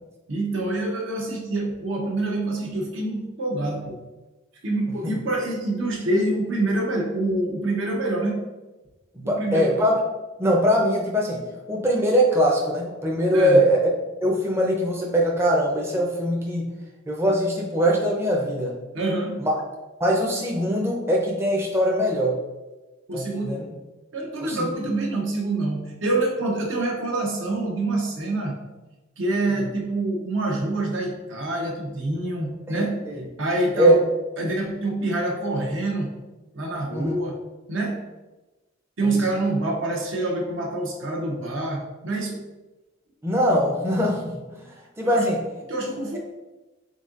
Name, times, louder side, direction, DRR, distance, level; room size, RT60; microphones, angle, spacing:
voice 1, 0.3-4.0 4.6-8.4 9.2-9.6 13.3-13.6 18.9-19.4 23.1-23.6 24.1-28.6 29.2-33.0 33.4-34.0 34.4-36.1 36.5-37.4 37.7-38.0 39.0-42.4 45.0-45.3 45.7-46.2, right 2 dB, 70° right, 0 dB, 0.8 m, -26 dB
voice 2, 9.1-9.9 10.4-11.4 11.7-13.8 14.2-16.7 17.1-18.7 19.4-19.6 20.0-22.4 23.1-23.7 24.4-24.7 29.5-29.7 32.7-33.2 33.7-34.0 36.9-37.1 39.0-39.2 43.2-44.7 45.0-45.4, equal, 15° right, -1 dB, 0.5 m, -22 dB
4.0 x 3.7 x 2.4 m, 1.1 s
head